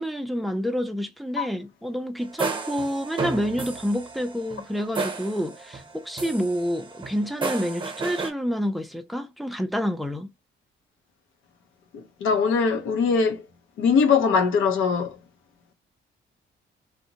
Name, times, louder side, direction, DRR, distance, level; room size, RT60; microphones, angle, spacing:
voice 1, 0.0-10.3, equal, ahead, 0.4 m, -28 dB
sound 1, 2.2-5.9 6.2-8.3, right 4 dB, 25° right, 0.8 m, -32 dB
voice 2, 11.9-13.4 13.8-15.2, left 5 dB, 85° left, 0.7 m, -21 dB
2.6 x 2.2 x 2.8 m
cardioid pair, 90°, 20 cm